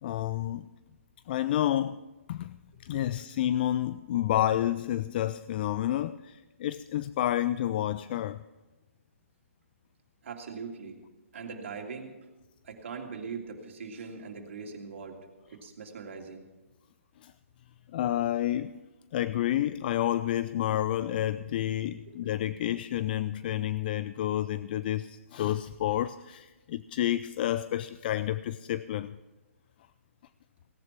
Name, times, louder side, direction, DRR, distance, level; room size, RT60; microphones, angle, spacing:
voice 1, 0.0-0.7 1.3-2.0 2.3-8.4 17.2-17.3 17.9-18.7 19.1-29.2, left 12 dB, 40° left, 0.4 m, -30 dB
voice 2, 10.2-11.0 11.3-12.1 12.6-15.2 15.5-16.4 22.1-22.2, right 5 dB, 60° right, 2.8 m, -41 dB
17.5 x 10.5 x 5.9 m
hypercardioid pair, 145°, 8 cm